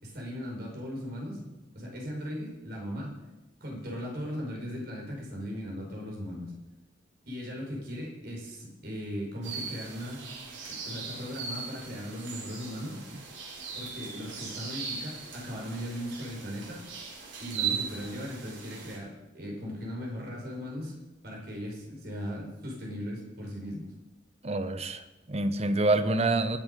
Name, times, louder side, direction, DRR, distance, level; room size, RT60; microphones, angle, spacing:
voice 1, 0.0-3.1 3.6-6.5 7.3-10.3 10.7-13.0 13.7-16.8 17.4-20.9 21.2-23.9, equal, 55° right, -2 dB, 5.1 m, -38 dB
sound 1, 9.4-19.0, right 6 dB, 80° right, 4.4 m, -39 dB
voice 2, 24.4-26.6, right 2 dB, 35° right, 10 dB, 0.9 m, -27 dB
20.5 x 7.6 x 5.4 m, 0.99 s
head